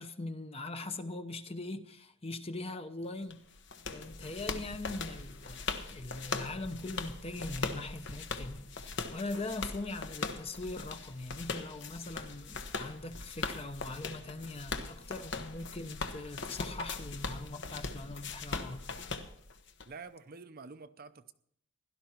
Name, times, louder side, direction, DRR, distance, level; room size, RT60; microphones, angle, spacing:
voice 1, 0.0-3.4 3.9-19.1, left 2 dB, 25° left, 0.8 m, -41 dB
sound 1, 3.3-19.9, left 4 dB, 55° left, 1.1 m, -40 dB
voice 2, 19.9-21.3, right 4 dB, 45° right, 0.7 m, -48 dB
16.5 x 12.0 x 4.5 m
head